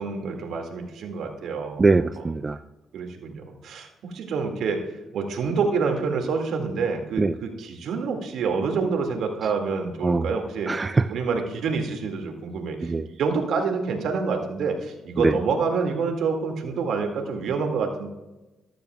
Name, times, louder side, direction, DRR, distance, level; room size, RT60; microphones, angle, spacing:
voice 1, 0.0-1.8 2.2-2.3 2.9-3.9 4.1-4.8 5.1-10.7 11.1-12.9 13.2-18.1, right 5 dB, 75° right, 3 dB, 2.0 m, -27 dB
voice 2, 1.8-2.6 7.2-7.3 10.0-10.3 10.7-11.1 12.8-13.1 15.2-15.3, right 3 dB, 25° right, 11 dB, 0.3 m, -21 dB
14.0 x 13.0 x 2.3 m, 1.1 s
cardioid pair, 90°, 0 cm